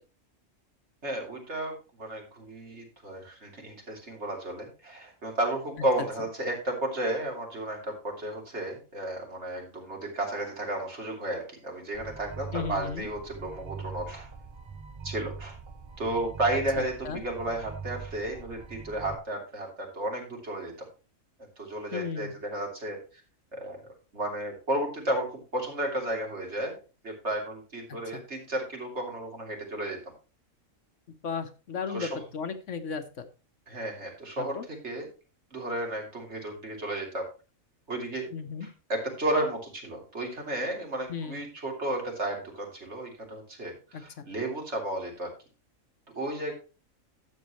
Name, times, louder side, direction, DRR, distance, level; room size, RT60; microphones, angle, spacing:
voice 1, 1.0-1.7 2.0-14.3 15.0-15.6 16.0-20.7 21.6-23.0 23.5-23.8 24.1-25.3 25.5-26.8 27.0-30.0 31.9-32.2 33.7-35.1 35.5-37.3 37.9-38.3 38.6-45.3 46.1-46.5, right 1 dB, 55° right, 1 dB, 3.2 m, -33 dB
sound 1, 11.9-19.1, right 5 dB, 30° right, 0.5 m, -42 dB
voice 2, 12.5-13.1 16.8-17.2 21.9-22.3 31.2-33.2 34.4-34.6 38.3-38.7 41.1-41.4 43.9-44.3, left 6 dB, 65° left, 9 dB, 1.3 m, -35 dB
12.0 x 7.8 x 3.1 m, 0.33 s
omnidirectional pair, 1.4 m